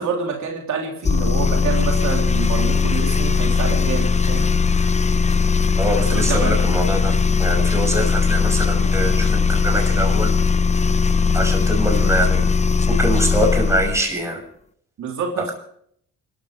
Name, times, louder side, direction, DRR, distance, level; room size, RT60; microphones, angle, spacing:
voice 1, 0.0-4.5 6.1-6.8 15.0-15.5, right 6 dB, 70° right, 0 dB, 3.5 m, -27 dB
sound 1, 1.0-14.0, left 5 dB, 20° left, 0.8 m, -19 dB
voice 2, 5.7-7.1 7.4-10.3 11.3-12.4 12.9-14.4, right 1 dB, 10° right, 2 dB, 6.3 m, -23 dB
28.5 x 13.0 x 3.4 m, 0.65 s
cardioid pair, 90°, 30 cm